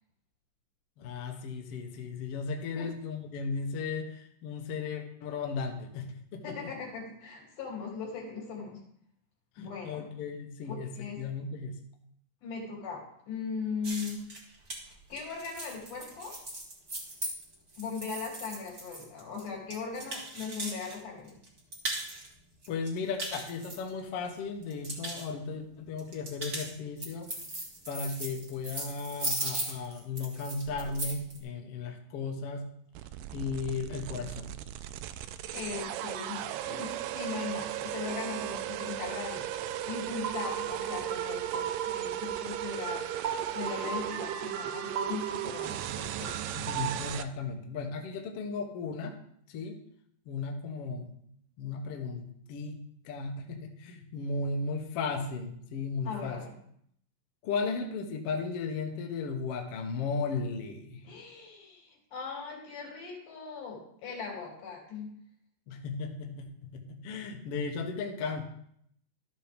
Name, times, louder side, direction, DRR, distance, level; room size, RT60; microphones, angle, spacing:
voice 1, 1.0-6.7 9.6-10.9 11.2-11.7 22.7-27.3 27.9-32.7 33.3-34.5 46.5-49.1 49.5-49.8 50.2-51.1 51.6-56.4 57.4-61.0 65.7-68.4, left 4 dB, 60° left, 3 dB, 1.6 m, -35 dB
voice 2, 6.4-8.8 9.6-10.0 10.7-11.2 12.4-14.2 14.8-16.4 17.8-21.4 35.5-43.1 43.5-46.5 56.1-56.5 61.1-65.1, left 5 dB, 85° left, -1 dB, 4.5 m, -39 dB
sound 1, 13.8-20.9 21.3-22.3 22.6-24.3 24.6-25.2 26.0-31.4, right 2 dB, 30° right, 1.3 m, -38 dB
sound 2, 33.0-47.2, right 12 dB, 80° right, 2.1 m, -36 dB
sound 3, 40.2-47.1, right 7 dB, 60° right, 2.2 m, -38 dB
12.5 x 7.6 x 3.4 m, 0.68 s
omnidirectional pair, 4.0 m